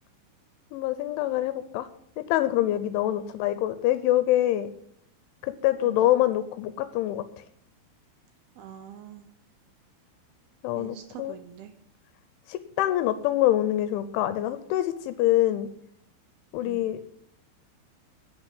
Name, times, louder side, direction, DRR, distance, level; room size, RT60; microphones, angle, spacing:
voice 1, 0.7-1.9 2.2-4.7 5.4-7.2 10.6-11.4 12.5-15.7 16.5-17.0, left 14 dB, 85° left, 12 dB, 3.1 m, -25 dB
voice 2, 3.1-3.4 5.8-6.1 8.6-9.3 10.7-11.7 16.6-17.0, right 10 dB, 80° right, 9 dB, 2.2 m, -45 dB
11.0 x 8.8 x 9.0 m, 0.69 s
omnidirectional pair, 5.5 m